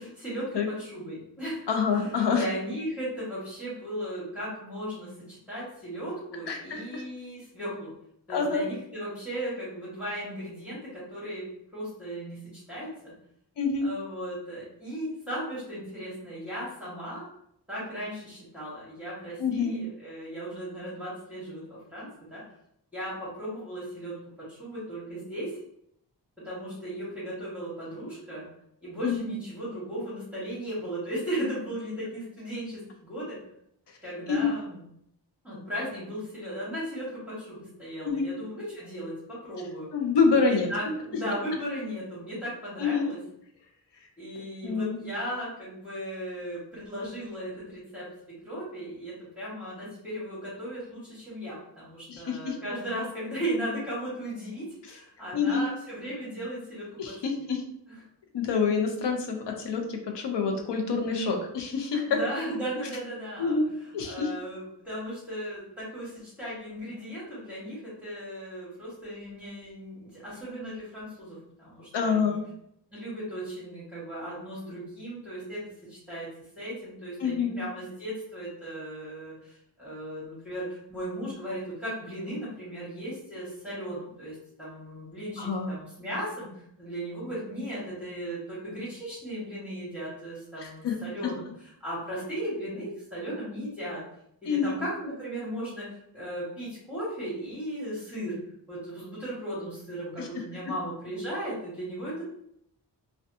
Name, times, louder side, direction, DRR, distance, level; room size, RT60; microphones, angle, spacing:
voice 1, 0.0-1.7 2.0-7.9 8.3-11.4 11.7-12.4 12.7-13.1 13.8-17.2 17.7-22.4 22.9-24.1 24.5-25.6 26.4-28.5 28.8-33.4 34.0-34.9 35.4-39.9 40.3-43.2 44.2-48.0 48.4-57.2 62.1-63.6 64.0-72.4 72.9-75.6 75.9-76.3 76.6-86.5 86.8-94.0 94.4-95.9 96.1-98.4 98.7-102.2, equal, 5° right, -10 dB, 1.1 m, -36 dB
voice 2, 1.7-2.4 6.5-7.0 8.3-8.6 13.6-13.9 19.4-19.8 29.0-29.3 34.3-34.5 38.0-38.3 39.9-40.7 42.8-43.1 44.6-45.0 52.1-52.6 55.3-55.6 57.0-57.6 58.3-62.2 63.4-64.3 71.9-72.4 77.2-77.6 85.4-85.7 90.6-91.0 91.2-91.3 94.5-94.8 100.2-100.4, left 5 dB, 80° left, 3 dB, 0.6 m, -27 dB
2.5 x 2.2 x 2.6 m, 0.72 s
wide cardioid pair, 130°, 41 cm